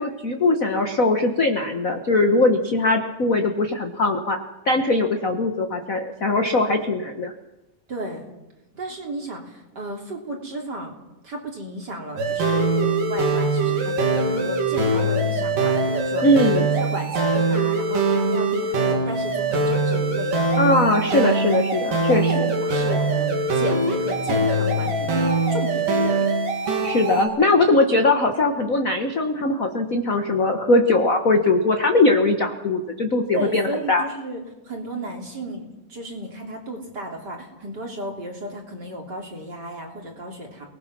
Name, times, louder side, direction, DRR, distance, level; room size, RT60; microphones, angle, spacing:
voice 1, 0.0-4.4 4.6-7.3 16.2-16.7 20.6-22.5 26.8-34.1, left 2 dB, 55° left, 4 dB, 0.9 m, -20 dB
voice 2, 7.9-8.3 8.7-10.9 11.2-16.3 16.8-20.4 22.1-26.3 33.3-40.7, right 1 dB, 30° right, 1 dB, 3.7 m, -34 dB
sound 1, 12.2-27.3, right 2 dB, 90° right, 4.7 m, -22 dB
29.0 x 19.5 x 6.1 m, 1.0 s
omnidirectional pair, 3.7 m